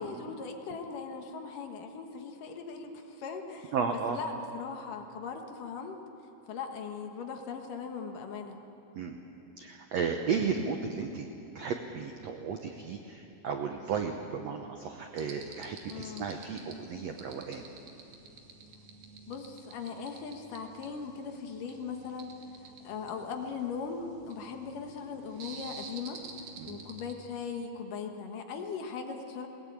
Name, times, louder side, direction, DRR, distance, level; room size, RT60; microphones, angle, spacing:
voice 1, 0.0-6.0 6.5-8.6 15.9-16.3 19.3-22.3 22.8-26.2 26.7-29.5, left 5 dB, 65° left, 4 dB, 2.7 m, -39 dB
voice 2, 3.7-4.2 8.9-9.2 9.6-11.3 11.5-17.8 26.6-26.8, right 6 dB, 90° right, 4 dB, 1.5 m, -34 dB
sound 1, 15.2-27.1, right 4 dB, 70° right, 3.7 m, -50 dB
21.0 x 18.5 x 8.9 m, 3.0 s
omnidirectional pair, 4.5 m